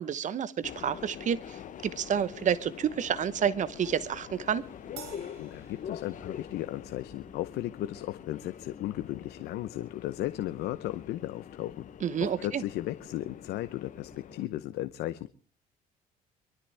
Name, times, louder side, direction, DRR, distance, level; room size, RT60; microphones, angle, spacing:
voice 1, 0.0-4.6 12.0-12.6, right 8 dB, 45° right, 16 dB, 0.9 m, -29 dB
Subway metro underground, 0.6-14.5, left 9 dB, 50° left, 0.9 m, -45 dB
sound 1, 2.1-7.1, equal, 15° right, 6.1 m, -58 dB
Crash cymbal, 5.0-6.6, right 8 dB, 70° right, 6.6 m, -49 dB
voice 2, 5.4-11.9 12.2-15.3, left 14 dB, 80° left, 12 dB, 0.8 m, -35 dB
23.5 x 13.0 x 3.4 m, 0.38 s
cardioid pair, 110°, 17 cm